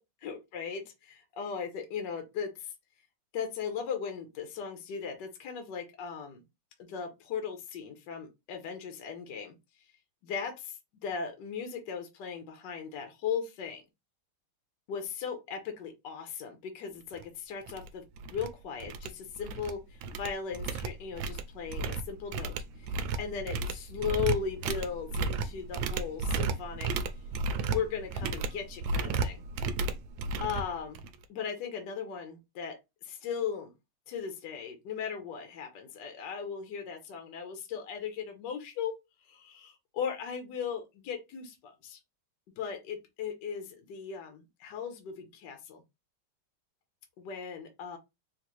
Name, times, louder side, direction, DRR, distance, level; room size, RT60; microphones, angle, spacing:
voice 1, 0.2-2.7 3.3-6.4 6.8-9.5 10.2-13.8 14.9-26.9 27.7-29.4 30.4-31.0 31.3-33.7 34.1-38.9 39.3-42.0 42.5-45.8 47.2-48.0, left 7 dB, 65° left, 4 dB, 1.4 m, -37 dB
sound 1, 17.1-17.2 17.7-17.9 18.2-18.5 18.8-19.7 20.0-31.2, right 4 dB, 75° right, 1.2 m, -33 dB
3.8 x 2.6 x 2.9 m, 0.22 s
omnidirectional pair, 2.3 m